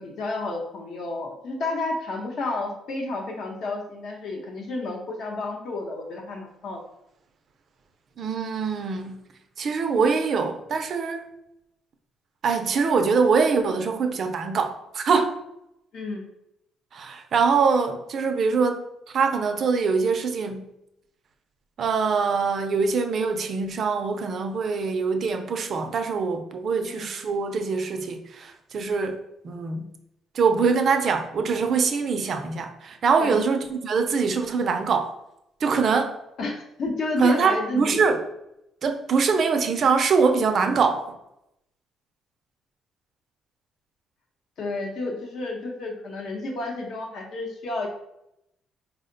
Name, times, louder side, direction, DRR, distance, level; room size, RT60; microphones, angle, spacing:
voice 1, 0.0-6.8 15.9-16.2 26.8-27.1 33.2-33.4 36.4-38.0 44.6-47.9, left 2 dB, 55° left, 1 dB, 0.8 m, -31 dB
voice 2, 8.2-9.2 9.6-11.2 12.4-15.4 16.9-18.8 19.1-20.7 21.8-29.2 29.4-29.9 30.3-35.1 35.6-36.1 37.2-38.2 38.8-41.1, right 5 dB, 45° right, 6 dB, 0.4 m, -23 dB
4.3 x 2.1 x 3.8 m, 0.83 s
cardioid pair, 140°, 0 cm